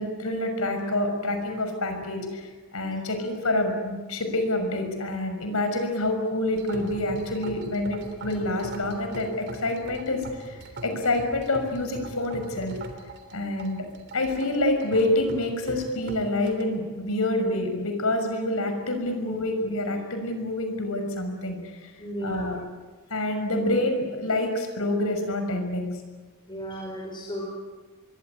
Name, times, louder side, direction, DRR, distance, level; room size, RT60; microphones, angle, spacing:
voice 1, 0.0-12.8 13.3-13.8 14.1-21.9 22.2-22.6 23.1-26.0, left 1 dB, 70° left, 6 dB, 6.0 m, -27 dB
sound 1, 6.5-16.6, right 2 dB, 50° right, 3.4 m, -41 dB
voice 2, 22.0-22.5 26.5-27.5, equal, 20° left, -1 dB, 5.2 m, -34 dB
25.5 x 22.5 x 9.9 m, 1.3 s
head